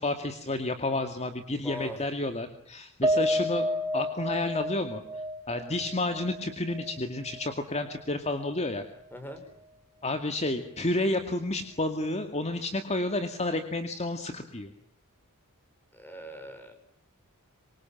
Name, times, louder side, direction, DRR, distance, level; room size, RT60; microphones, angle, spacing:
voice 1, 0.0-3.7 3.9-5.0 5.5-8.8 10.0-14.7, left 2 dB, 30° left, 7 dB, 2.3 m, -30 dB
voice 2, 1.6-2.0 9.1-9.4 15.9-16.7, left 1 dB, 10° left, 7 dB, 5.9 m, -40 dB
Piano, 3.0-7.5 7.9-8.0 8.4-8.5, equal, 20° right, 2.9 m, -31 dB
26.5 x 25.5 x 7.6 m, 0.70 s
head